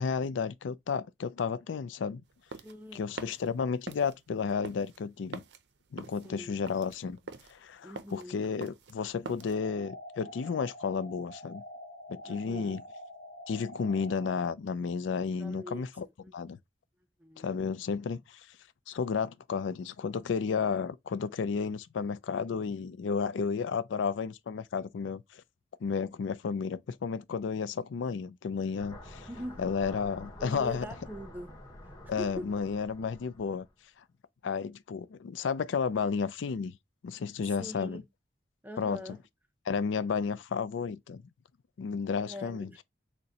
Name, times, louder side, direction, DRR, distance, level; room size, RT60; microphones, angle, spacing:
voice 1, 0.0-2.2 2.9-5.4 5.9-7.2 7.5-11.6 12.1-12.8 13.5-16.1 16.3-16.6 17.4-18.5 18.9-25.4 25.8-29.3 29.6-30.9 32.1-33.7 34.4-36.7 37.0-38.0 38.8-39.0 39.7-41.2 41.8-42.7, left 5 dB, 85° left, 0.4 m, -32 dB
sound 1, 2.3-9.6, right 4 dB, 65° right, 0.5 m, -46 dB
voice 2, 2.6-3.3 6.2-6.6 7.8-8.4 12.2-12.8 15.4-16.3 17.2-17.6 29.3-29.6 30.4-31.5 31.8-32.5 37.5-38.0 38.6-39.2 42.2-42.8, equal, 10° right, 0.4 m, -43 dB
sound 2, 9.4-14.4, left 1 dB, 65° left, 1.6 m, -46 dB
sound 3, 28.8-33.7, left 1 dB, 20° left, 1.1 m, -48 dB
6.4 x 2.1 x 2.8 m
head